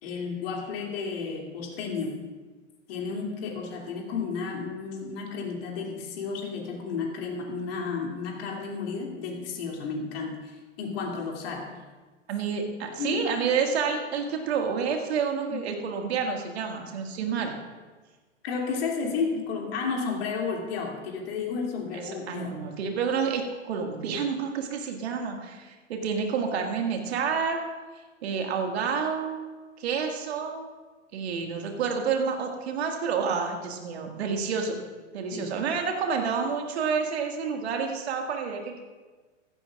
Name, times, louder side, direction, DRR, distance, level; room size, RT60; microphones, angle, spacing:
voice 1, 0.0-2.2 2.9-11.8 13.0-13.3 15.5-15.6 18.4-22.6 35.3-35.5, left 5 dB, 50° left, 0 dB, 2.9 m, -32 dB
voice 2, 12.3-17.5 22.3-27.6 28.2-29.4 29.8-30.7 31.1-34.8 35.1-38.8, right 6 dB, 55° right, 2 dB, 2.1 m, -29 dB
15.5 x 14.0 x 2.5 m, 1.3 s
figure-of-eight pair, 110°, 38 cm